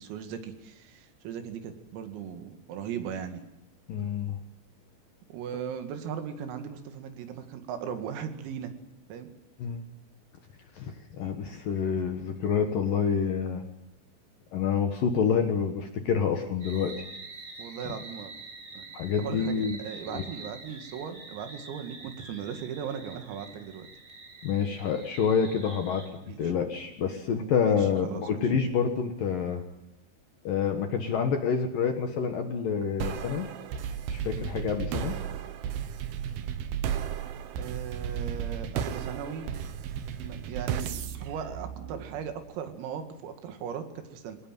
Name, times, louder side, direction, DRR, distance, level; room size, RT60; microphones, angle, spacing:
voice 1, 0.0-3.5 5.3-8.7 9.1-9.3 17.6-18.3 18.7-18.9 19.2-23.9 26.2-26.5 27.6-28.2 37.5-39.5 40.2-44.4, right 8 dB, 90° right, 7 dB, 4.8 m, -38 dB
voice 2, 3.9-4.4 9.6-9.9 10.7-13.6 14.5-16.9 17.8-17.9 18.9-19.8 20.1-20.2 24.4-26.1 26.4-29.6 30.4-33.5 34.1-35.2, left 6 dB, 65° left, 5 dB, 2.4 m, -28 dB
sound 1, 16.6-26.1, right 3 dB, 20° right, 3.5 m, -46 dB
sound 2, 33.0-42.4, right 8 dB, 70° right, 2.6 m, -34 dB
23.5 x 19.5 x 9.1 m, 0.88 s
omnidirectional pair, 5.9 m